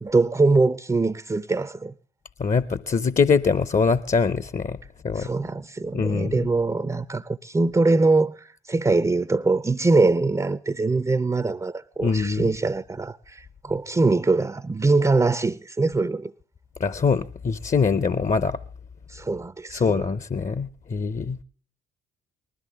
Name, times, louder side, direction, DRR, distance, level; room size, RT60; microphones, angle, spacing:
voice 1, 0.0-1.9 5.1-16.3 19.1-20.1, right 3 dB, 10° right, 0.6 m, -23 dB
voice 2, 2.4-4.8 5.0-5.3 5.9-6.5 12.0-12.4 16.8-18.6 19.7-21.4, left 5 dB, 25° left, 0.7 m, -23 dB
20.0 x 13.5 x 3.6 m
figure-of-eight pair, 45°, 33 cm